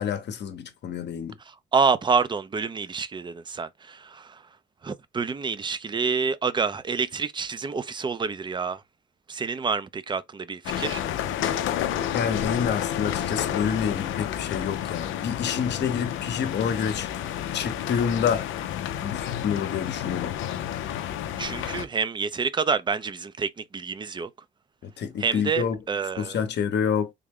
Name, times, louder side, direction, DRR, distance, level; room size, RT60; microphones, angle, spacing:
voice 1, 0.0-1.3 12.1-17.1 17.5-18.5 19.0-20.4 24.8-25.8 26.2-27.1, left 7 dB, 60° left, 0.8 m, -28 dB
voice 2, 1.7-4.4 4.8-8.8 9.3-11.0 21.4-24.3 25.2-26.4, right 5 dB, 25° right, 0.4 m, -27 dB
sound 1, 10.6-21.8, left 10 dB, 85° left, 0.5 m, -30 dB
3.6 x 2.2 x 3.5 m
cardioid pair, 90°, 20 cm